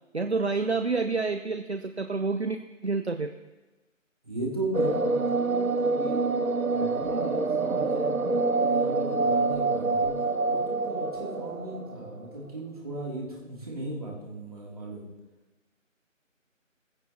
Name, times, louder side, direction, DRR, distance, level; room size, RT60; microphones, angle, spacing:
voice 1, 0.1-3.3, right 4 dB, 55° right, 9 dB, 0.7 m, -28 dB
voice 2, 4.2-6.4 6.7-8.3 8.6-10.2 10.4-15.1, right 2 dB, 25° right, -3 dB, 2.8 m, -37 dB
sound 1, 4.7-12.3, right 3 dB, 90° right, 1.2 m, -26 dB
18.5 x 15.5 x 2.8 m, 1.1 s
figure-of-eight pair, 170°, 40 cm